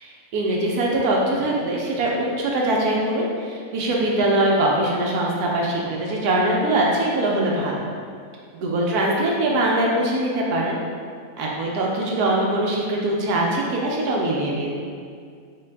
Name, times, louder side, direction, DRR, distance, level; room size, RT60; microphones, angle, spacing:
voice 1, 0.3-7.8 8.5-10.8 11.4-14.8, right 1 dB, 75° right, -2 dB, 1.2 m, -22 dB
3.8 x 3.3 x 3.3 m, 2.2 s
omnidirectional pair, 1.7 m